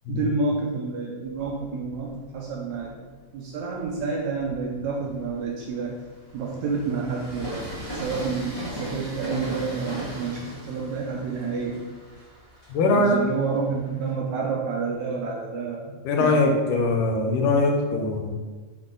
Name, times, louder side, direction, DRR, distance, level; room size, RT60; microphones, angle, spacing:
voice 1, 0.1-3.0 3.3-6.0 6.3-11.8 12.9-16.4, right 4 dB, 75° right, -1 dB, 1.8 m, -29 dB
Train, 1.3-2.9 3.5-14.1, right 1 dB, 30° left, 0.4 m, -39 dB
voice 2, 12.7-13.2 16.1-18.3, left 2 dB, 75° left, 2 dB, 2.4 m, -21 dB
7.6 x 4.0 x 3.9 m, 1.3 s
omnidirectional pair, 3.9 m